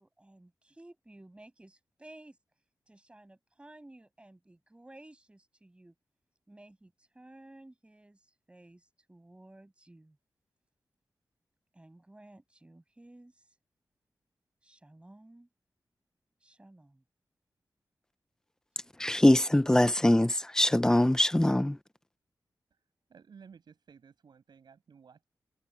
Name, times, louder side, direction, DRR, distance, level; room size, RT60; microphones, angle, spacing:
voice 1, 0.0-2.4 2.9-5.9 6.5-10.2 11.7-13.6 14.6-15.5 16.4-17.0 18.7-18.8, right 1 dB, 15° right, 7.6 m, -55 dB
voice 2, 19.0-21.8, left 1 dB, 10° left, 0.9 m, -23 dB
voice 3, 23.1-25.2, right 6 dB, 85° right, 6.8 m, -55 dB
wide cardioid pair, 140°, 7 cm